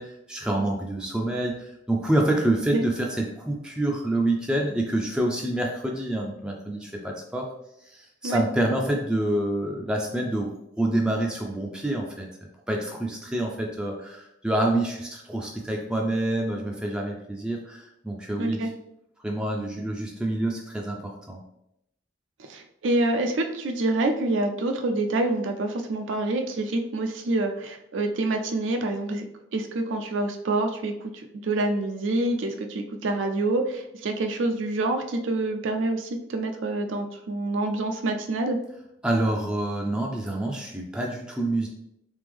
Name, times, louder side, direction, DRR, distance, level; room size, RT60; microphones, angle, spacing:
voice 1, 0.0-7.5 7.9-12.3 12.7-18.7 19.2-21.4 39.0-41.7, right 1 dB, 5° right, -1 dB, 0.4 m, -27 dB
voice 2, 18.4-18.7 22.4-29.2 29.5-38.6, right 2 dB, 80° right, 4 dB, 0.4 m, -27 dB
3.5 x 3.3 x 3.4 m, 0.80 s
head